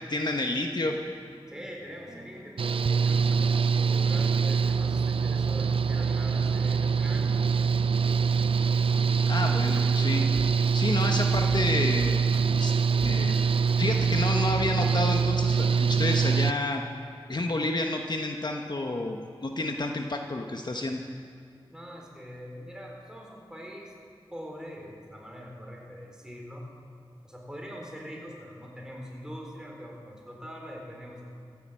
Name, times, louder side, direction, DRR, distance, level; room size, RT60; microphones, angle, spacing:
voice 1, 0.1-1.0 9.3-10.2 10.7-12.2 12.5-12.7 13.0-13.4 13.8-16.8 17.3-21.0, left 2 dB, 50° left, 3 dB, 1.1 m, -30 dB
sound 1, 1.0-10.7 11.0-12.7 13.0-13.4 13.7-14.4, right 2 dB, 30° right, 0.9 m, -46 dB
voice 2, 1.5-7.4 21.7-23.9 24.3-26.6 27.2-31.3, equal, 5° right, -1 dB, 4.1 m, -43 dB
Engine / Mechanical fan, 2.6-16.5, right 5 dB, 70° right, 0.4 m, -24 dB
15.5 x 11.0 x 7.6 m, 2.3 s
wide cardioid pair, 55°, 10 cm